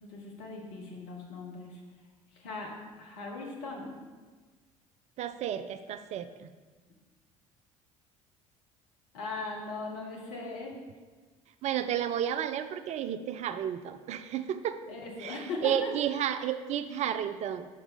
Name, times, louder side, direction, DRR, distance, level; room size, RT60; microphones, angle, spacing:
voice 1, 0.0-1.8 2.3-4.0 9.1-10.7 14.9-15.9, left 3 dB, 65° left, -1 dB, 1.3 m, -39 dB
voice 2, 5.2-6.3 11.6-14.8 15.2-17.7, right 10 dB, 40° right, 11 dB, 0.4 m, -32 dB
5.8 x 4.0 x 5.2 m, 1.4 s
figure-of-eight pair, 60°, 18 cm